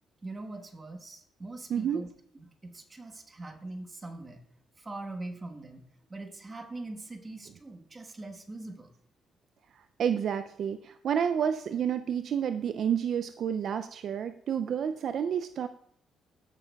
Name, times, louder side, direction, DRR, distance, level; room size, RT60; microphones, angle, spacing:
voice 1, 0.2-2.1 2.3-4.4 4.8-5.8 6.1-8.9, right 2 dB, 25° right, 4 dB, 1.2 m, -42 dB
voice 2, 1.7-2.0 10.0-15.7, right 8 dB, 65° right, 10 dB, 0.3 m, -30 dB
13.5 x 6.7 x 2.3 m, 0.68 s
cardioid pair, 90°, 0 cm